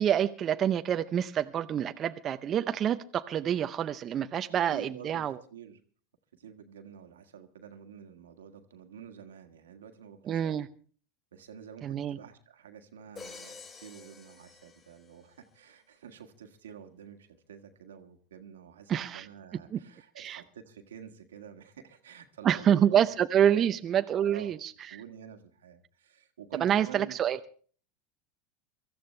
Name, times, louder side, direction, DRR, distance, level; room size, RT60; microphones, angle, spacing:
voice 1, 0.0-5.3 10.3-10.7 11.8-12.2 18.9-19.3 19.7-19.8 20.2-20.4 22.4-24.7 26.6-27.4, right 9 dB, 35° right, 0.7 m, -27 dB
voice 2, 4.7-5.8 6.3-10.6 11.3-23.0 23.4-23.8 24.2-27.2, right 8 dB, 85° right, 1.7 m, -48 dB
Crash cymbal, 13.2-15.4, left 4 dB, 40° left, 6.6 m, -49 dB
23.5 x 14.0 x 3.3 m
hypercardioid pair, 90°, 0 cm